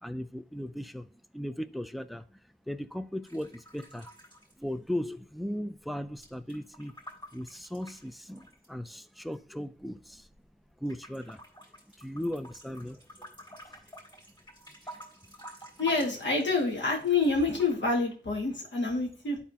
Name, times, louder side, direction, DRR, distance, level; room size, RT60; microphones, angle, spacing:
voice 1, 0.0-2.4 2.7-4.1 4.6-6.9 7.3-10.3 10.8-11.4 11.9-13.3 13.7-13.8 14.8-15.0, equal, ahead, 0.5 m, -37 dB
sound 1, 3.2-5.3 5.5-8.9 9.5-10.5 10.9-17.7, right 1 dB, 25° left, 3.4 m, -49 dB
voice 2, 15.8-19.4, left 3 dB, 70° left, 2.3 m, -27 dB
11.5 x 4.2 x 2.9 m
wide cardioid pair, 90°, 19 cm